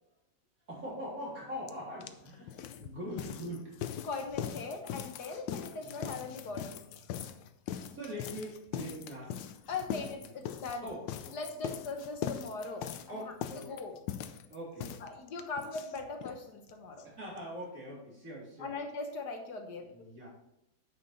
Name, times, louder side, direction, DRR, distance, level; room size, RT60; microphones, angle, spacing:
voice 1, 0.7-3.8 5.8-6.3 7.3-7.5 7.9-10.3 10.8-11.4 13.1-13.8 14.5-15.2 17.0-18.7 19.9-20.3, equal, 45° right, -4 dB, 3.8 m, -43 dB
sound 1, 1.7-1.8 2.0-16.4 16.7-16.8 17.0-17.1 17.4-17.5, left 9 dB, 80° left, 1.4 m, -41 dB
voice 2, 4.0-6.8 9.7-10.9 11.3-13.2 13.5-13.9 15.0-17.1 18.6-19.9, left 3 dB, 65° left, 4 dB, 1.6 m, -40 dB
9.6 x 6.2 x 4.2 m, 0.87 s
omnidirectional pair, 2.0 m